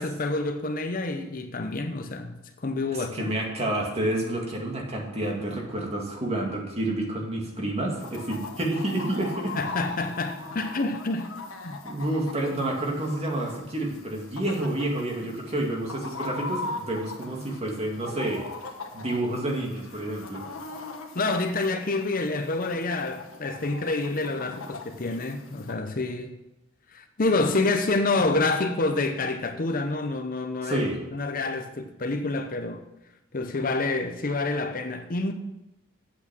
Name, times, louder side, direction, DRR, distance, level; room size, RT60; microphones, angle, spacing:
voice 1, 0.0-3.3 9.6-11.3 11.6-11.8 21.1-26.4 26.9-30.8 31.1-32.8 33.3-35.3, left 3 dB, 45° left, 0.8 m, -28 dB
voice 2, 3.1-9.5 11.8-18.4 18.9-20.5 30.6-31.0, right 1 dB, 30° right, 2.2 m, -29 dB
Chicken rooster, 8.0-25.7, left 3 dB, 90° left, 1.3 m, -40 dB
8.3 x 8.2 x 6.1 m
head